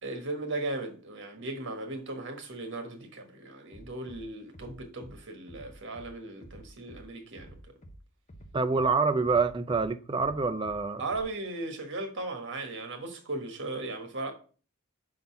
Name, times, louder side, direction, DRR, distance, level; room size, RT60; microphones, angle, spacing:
voice 1, 0.0-7.5 11.0-14.3, right 2 dB, 60° right, 1.5 m, -37 dB
Bass drum, 3.7-4.2 4.5-5.1 5.5-6.1 6.4-7.0 7.3-8.0 8.3-8.9 9.2-9.8 10.2-10.8 11.1-11.2, right 1 dB, 35° left, 0.9 m, -49 dB
voice 2, 8.5-11.0, right 4 dB, 25° right, 0.4 m, -26 dB
5.4 x 3.9 x 5.6 m
head